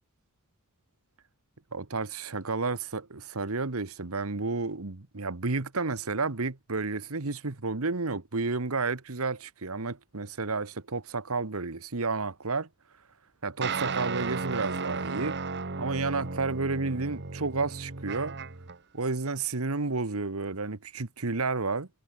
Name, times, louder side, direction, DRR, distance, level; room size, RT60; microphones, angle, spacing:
voice 1, 1.7-12.7 13.4-15.4 15.8-18.3 18.9-21.9, right 3 dB, 70° right, 1.4 m, -31 dB
sound 1, 13.6-18.8, right 4 dB, 50° right, 1.6 m, -34 dB
head